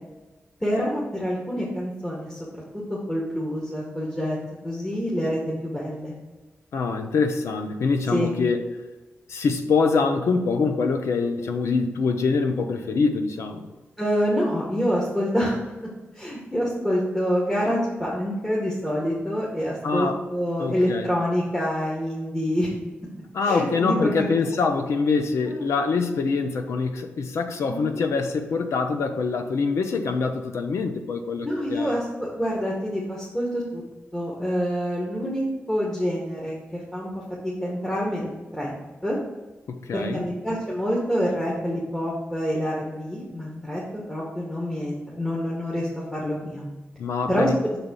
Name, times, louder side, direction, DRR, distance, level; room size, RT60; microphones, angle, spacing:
voice 1, 0.6-2.4 2.7-2.8 3.1-4.4 4.6-6.1 8.1-8.4 14.0-15.6 16.1-22.7 23.4-24.3 25.5-25.6 27.7-28.0 31.4-33.8 34.1-38.7 39.0-39.2 39.9-46.7 47.3-47.8, equal, 10° left, -5 dB, 1.5 m, -27 dB
voice 2, 6.7-8.6 9.3-13.7 19.8-20.2 20.6-21.1 23.3-31.9 39.7-40.3 47.0-47.6, left 4 dB, 90° left, 7 dB, 0.7 m, -24 dB
5.9 x 4.0 x 5.3 m, 1.2 s
wide cardioid pair, 90°, 5 cm